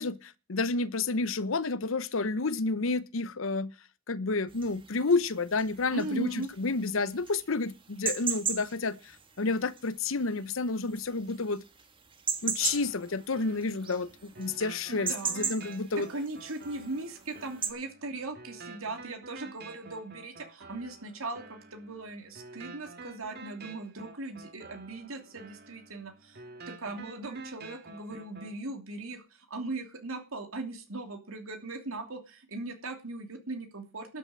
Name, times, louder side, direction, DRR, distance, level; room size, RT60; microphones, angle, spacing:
voice 1, 0.0-3.7 4.1-11.6 12.4-16.1, left 3 dB, 70° left, 0.8 m, -30 dB
sound 1, 4.5-17.7, right 6 dB, 25° right, 1.5 m, -37 dB
voice 2, 5.9-6.5 14.9-15.4 15.9-26.4 26.7-34.2, right 2 dB, 90° right, 2.9 m, -39 dB
sound 2, 12.6-28.6, right 3 dB, 50° right, 1.8 m, -49 dB
12.5 x 6.7 x 8.6 m
head